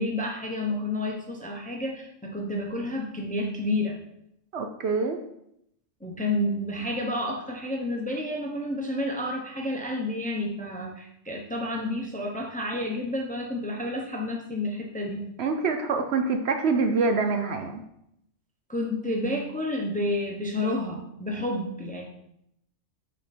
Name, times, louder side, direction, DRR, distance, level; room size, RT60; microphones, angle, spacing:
voice 1, 0.0-4.0 6.0-15.3 18.7-22.0, left 1 dB, 10° left, 1 dB, 0.6 m, -30 dB
voice 2, 4.5-5.2 15.4-17.8, right 4 dB, 65° right, 6 dB, 0.8 m, -25 dB
6.6 x 4.3 x 4.2 m, 0.78 s
omnidirectional pair, 1.3 m